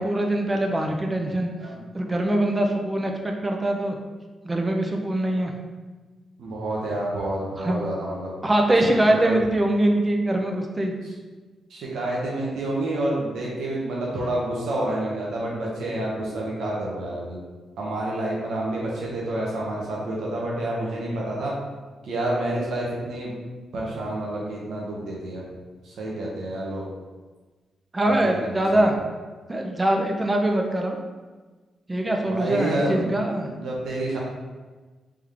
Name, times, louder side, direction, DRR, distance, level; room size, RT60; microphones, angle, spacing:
voice 1, 0.0-1.5 1.9-3.9 4.4-5.5 7.6-7.8 8.4-10.9 27.9-28.9 29.5-31.0 31.9-33.5, right 1 dB, 20° right, 2 dB, 0.6 m, -23 dB
voice 2, 6.4-8.3 9.1-9.3 11.7-17.4 17.8-21.5 22.0-23.3 23.7-25.4 25.8-26.8 28.1-28.9 32.2-33.1 33.5-34.2, right 1 dB, 80° right, -4 dB, 0.9 m, -28 dB
3.5 x 3.5 x 3.4 m, 1.3 s
cardioid pair, 95°, 0 cm